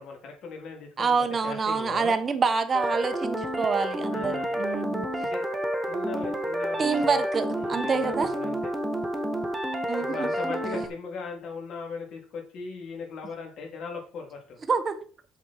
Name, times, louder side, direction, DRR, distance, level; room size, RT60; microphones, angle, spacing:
voice 1, 0.0-1.1 1.4-2.2 4.1-4.6 5.2-5.4 5.9-7.2 7.5-8.6 10.0-14.6, left 4 dB, 55° left, 3.6 m, -38 dB
voice 2, 1.0-5.1 6.8-8.3 9.9-10.3 14.7-15.0, right 5 dB, 30° right, 1.1 m, -27 dB
sound 1, 2.7-10.9, equal, 10° right, 1.4 m, -30 dB
8.1 x 7.2 x 4.7 m
cardioid pair, 135°, 0 cm